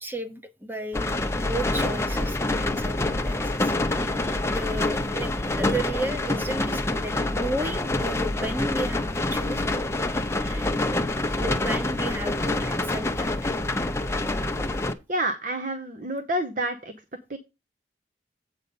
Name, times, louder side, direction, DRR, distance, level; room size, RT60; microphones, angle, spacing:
voice 1, 0.0-9.6 10.0-13.5, right 1 dB, 10° right, 0.9 m, -34 dB
sound 1, 0.9-14.9, left 2 dB, 15° left, 0.6 m, -26 dB
voice 2, 15.1-16.9 17.3-17.4, right 1 dB, 45° right, 0.8 m, -28 dB
8.2 x 5.0 x 5.3 m
head